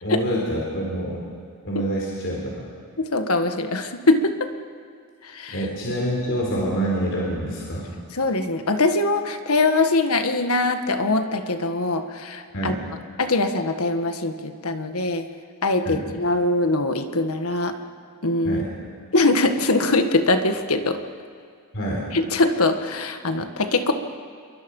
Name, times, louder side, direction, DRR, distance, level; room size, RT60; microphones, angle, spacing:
voice 1, 0.0-1.2 1.6-2.7 5.5-7.9 12.5-12.8 15.8-16.0 18.4-18.7 21.7-22.0, right 1 dB, 55° left, -3 dB, 3.9 m, -26 dB
voice 2, 3.0-4.5 5.2-5.7 8.1-12.7 13.2-15.3 15.6-17.7 18.2-18.6 19.1-21.0 22.1-23.9, left 2 dB, 75° left, 7 dB, 1.6 m, -22 dB
28.0 x 23.0 x 5.5 m, 2.2 s
head